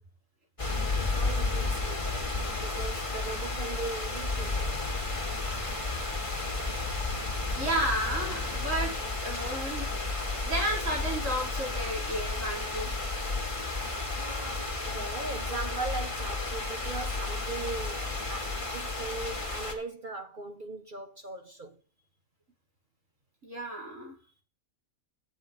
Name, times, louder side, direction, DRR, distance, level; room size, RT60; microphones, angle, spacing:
sound 1, 0.6-19.7, left 3 dB, 25° left, 1.9 m, -32 dB
voice 1, 1.2-4.8 14.2-21.8, right 3 dB, 40° right, 1.3 m, -39 dB
voice 2, 7.5-8.9 9.2-9.9 10.4-12.9 23.4-24.1, right 1 dB, 80° right, 5.3 m, -32 dB
9.8 x 8.3 x 5.4 m
omnidirectional pair, 1.3 m